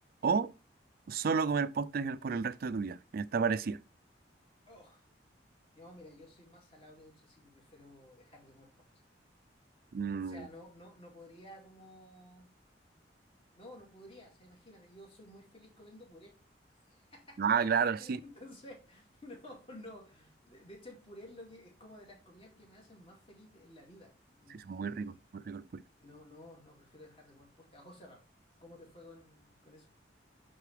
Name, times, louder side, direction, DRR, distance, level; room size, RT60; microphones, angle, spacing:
voice 1, 0.2-0.5 1.1-3.8 9.9-10.5 17.4-18.2 24.5-25.8, right 5 dB, 55° right, 0.4 m, -31 dB
voice 2, 4.7-5.1 5.7-9.0 10.2-12.5 13.5-16.4 16.7-17.4 17.7-24.1 24.4-25.2 26.0-28.2 28.6-30.0, left 1 dB, 30° left, 2.2 m, -53 dB
8.3 x 3.9 x 3.3 m
head